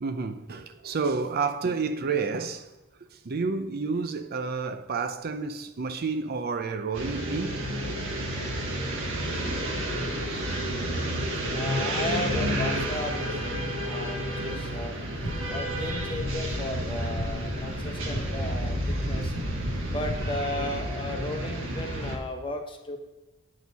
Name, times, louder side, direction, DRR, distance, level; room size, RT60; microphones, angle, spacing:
voice 1, 0.0-2.7 3.2-7.6 7.9-8.0 14.4-14.6 17.7-17.9 19.1-19.3, right 4 dB, 45° right, 0.5 m, -30 dB
sound 1, 6.9-22.2, right 1 dB, 65° right, 1.5 m, -30 dB
voice 2, 11.5-15.0 15.5-19.3 19.9-23.0, left 1 dB, 25° left, 1.0 m, -35 dB
sound 2, 15.2-20.5, equal, 85° left, 1.4 m, -37 dB
8.5 x 6.4 x 4.0 m
head